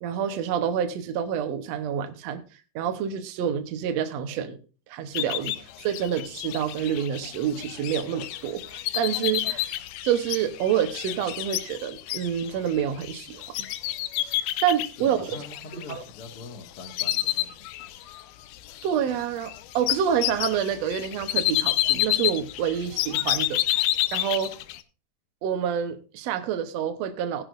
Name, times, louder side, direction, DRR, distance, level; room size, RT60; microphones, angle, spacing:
voice 1, 0.0-2.4 2.7-4.6 4.9-9.7 10.0-13.4 14.6-15.3 15.7-16.0 18.8-24.5 25.4-27.4, right 9 dB, 80° right, 1.5 m, -28 dB
sound 1, 5.1-16.5 16.8-18.2 18.5-24.8, left 15 dB, 80° left, 1.8 m, -29 dB
voice 2, 15.0-17.7, left 3 dB, 45° left, 2.3 m, -43 dB
17.0 x 11.0 x 2.5 m
omnidirectional pair, 4.3 m